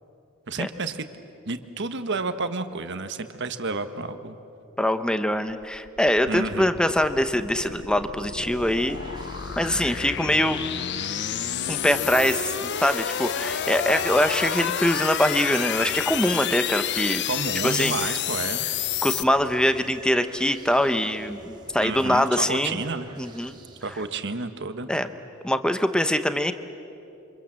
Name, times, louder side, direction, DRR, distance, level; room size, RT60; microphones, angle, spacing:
voice 1, 0.5-1.1 1.4-4.4 6.3-6.7 17.3-18.7 21.8-23.1 23.8-24.9, right 3 dB, 55° right, 9 dB, 1.3 m, -30 dB
voice 2, 4.8-9.0 9.6-10.6 11.7-17.2 17.6-18.1 19.0-22.8 23.2-23.5 24.9-25.1 25.4-26.5, left 1 dB, 5° left, 10 dB, 0.9 m, -23 dB
sound 1, 5.6-19.2, left 10 dB, 55° left, 0.6 m, -30 dB
sound 2, 8.2-24.1, equal, 20° right, 2.8 m, -45 dB
28.0 x 25.5 x 7.5 m, 2.8 s
head